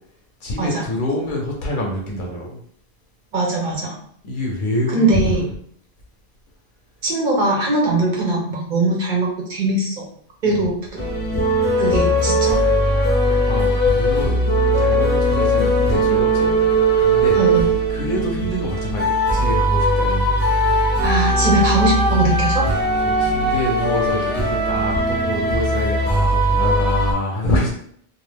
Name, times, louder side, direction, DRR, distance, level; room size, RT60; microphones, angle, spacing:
voice 1, 0.4-2.6 4.2-5.5 10.5-10.7 13.2-14.4 14.8-16.5 17.0-17.4 17.9-20.4 23.0-27.7, left 1 dB, 60° left, 0 dB, 0.7 m, -26 dB
voice 2, 3.3-3.9 4.9-5.4 7.0-10.0 10.4-11.0 11.8-12.6 17.4-17.7 21.0-22.6, right 2 dB, 55° right, -2 dB, 0.8 m, -20 dB
sound 1, 11.0-27.1, right 1 dB, 15° left, 0.5 m, -19 dB
2.4 x 2.0 x 3.3 m, 0.64 s
omnidirectional pair, 1.1 m